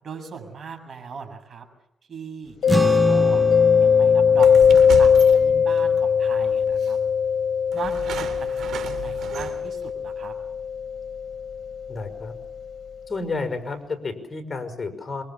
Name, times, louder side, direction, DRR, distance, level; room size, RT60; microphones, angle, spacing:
voice 1, 0.0-1.7 2.1-3.4 3.8-5.1 5.4-7.0 7.7-10.3, right 5 dB, 50° right, 5 dB, 7.4 m, -38 dB
Mallet percussion, 2.6-12.2, left 7 dB, 70° left, 1.2 m, -20 dB
sound 1, 2.7-9.3, right 2 dB, 15° right, 0.9 m, -29 dB
sound 2, 4.4-5.9 6.8-6.9 7.7-9.8, right 8 dB, 80° right, 3.7 m, -34 dB
voice 2, 11.9-12.3 13.1-15.2, left 3 dB, 30° left, 7 dB, 5.6 m, -31 dB
27.0 x 24.0 x 7.3 m, 0.81 s
cardioid pair, 90°, 0 cm